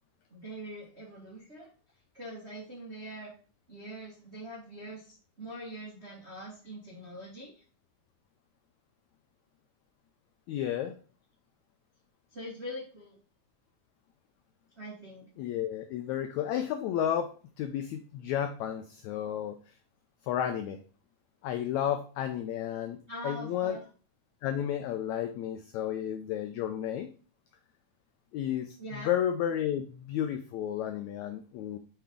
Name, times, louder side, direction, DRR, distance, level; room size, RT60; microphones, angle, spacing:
voice 1, 0.3-1.7 2.1-3.3 3.7-7.6 12.3-13.2 14.7-15.3 23.1-23.8 28.8-29.1, equal, 60° right, -5 dB, 0.6 m, -43 dB
voice 2, 10.5-10.9 15.4-19.6 20.2-20.8 21.4-23.0 23.2-23.8 24.4-27.1 28.3-31.8, left 10 dB, 85° left, 7 dB, 1.6 m, -32 dB
5.7 x 5.6 x 3.5 m, 0.38 s
omnidirectional pair, 3.8 m